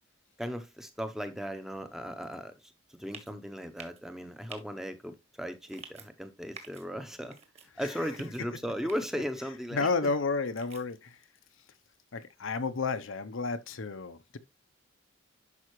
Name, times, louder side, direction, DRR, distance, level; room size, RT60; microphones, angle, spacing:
voice 1, 0.4-7.4 7.8-10.1, equal, ahead, 0.7 m, -37 dB
sound 1, 3.1-3.3 3.8-4.0 4.5-4.6 5.7-6.1 6.5-6.8 7.3-7.7 8.1-8.4 8.9-9.1 9.8-10.1 10.6-10.8, right 5 dB, 30° right, 1.5 m, -48 dB
voice 2, 7.8-8.1 9.7-11.2 12.1-14.4, left 4 dB, 75° left, 0.7 m, -32 dB
11.0 x 5.6 x 3.1 m
head